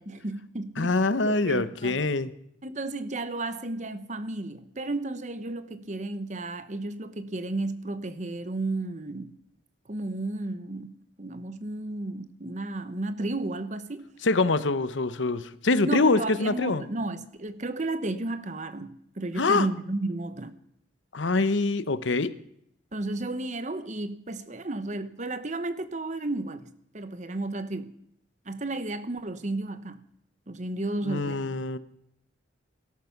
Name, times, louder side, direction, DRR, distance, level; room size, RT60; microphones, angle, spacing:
voice 1, 0.0-1.0 1.2-2.0 2.6-9.3 9.9-14.1 15.8-20.5 22.9-27.9 28.5-30.0 30.5-31.6, right 2 dB, 40° right, 1.0 m, -33 dB
voice 2, 0.8-2.3 14.2-16.8 19.4-19.7 21.1-22.3 31.0-31.8, left 3 dB, 85° left, 0.9 m, -25 dB
17.0 x 13.0 x 5.9 m
head